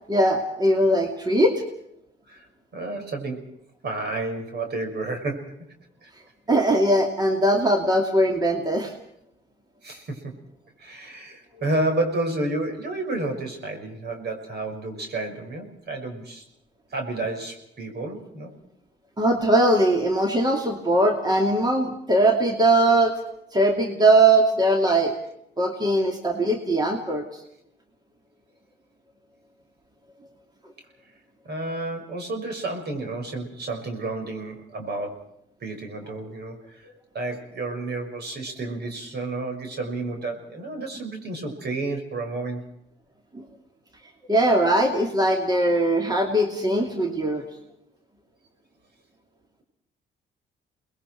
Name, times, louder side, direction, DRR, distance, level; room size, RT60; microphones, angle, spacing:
voice 1, 0.1-1.6 6.5-8.9 19.2-23.2 23.5-25.1 25.6-27.4 43.3-43.4 44.3-47.4, right 1 dB, 20° right, 2 dB, 2.7 m, -20 dB
voice 2, 2.7-3.5 3.8-5.5 6.0-6.1 9.8-10.3 10.8-16.4 16.9-18.5 31.4-35.2 35.6-36.8 37.1-42.6, right 2 dB, 55° right, 5 dB, 5.8 m, -31 dB
29.5 x 21.0 x 4.6 m, 0.76 s
cardioid pair, 90°, 20 cm